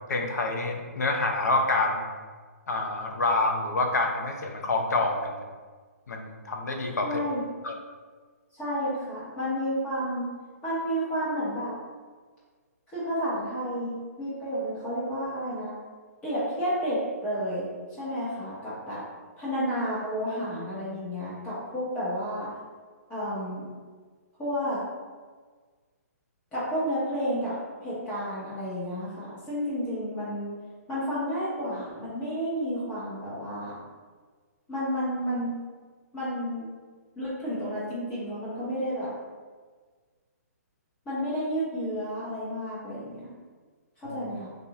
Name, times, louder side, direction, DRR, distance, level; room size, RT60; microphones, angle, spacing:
voice 1, 0.1-2.1 2.7-5.4 6.1-7.2 7.6-7.7 44.1-44.2, left 2 dB, 85° left, 3 dB, 0.6 m, -27 dB
voice 2, 7.0-7.5 8.5-10.3 10.6-11.7 12.9-15.7 16.2-17.7 18.0-19.0 19.4-22.5 23.1-23.6 24.4-24.8 26.5-30.5 30.9-33.8 34.7-35.6 36.1-36.7 37.2-39.1 41.0-43.3 44.0-44.5, equal, 15° left, -9 dB, 1.0 m, -31 dB
4.0 x 2.6 x 2.9 m, 1.5 s
hypercardioid pair, 165°, 9 cm